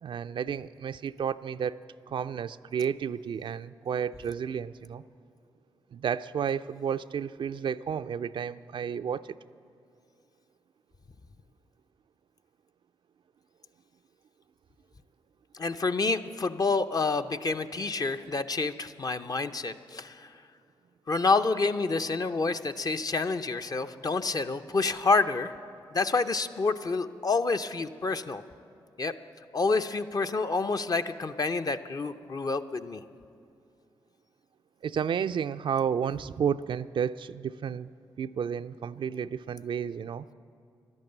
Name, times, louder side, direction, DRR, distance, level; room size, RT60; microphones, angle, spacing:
voice 1, 0.0-5.0 5.9-9.4 34.8-37.9 38.2-40.2, right 7 dB, 60° right, 12 dB, 0.4 m, -32 dB
voice 2, 15.5-20.3 21.1-25.5 25.9-28.4 29.0-29.1 29.5-33.0, left 3 dB, 40° left, 8 dB, 0.6 m, -28 dB
12.0 x 11.0 x 7.9 m, 2.5 s
supercardioid pair, 40°, 9 cm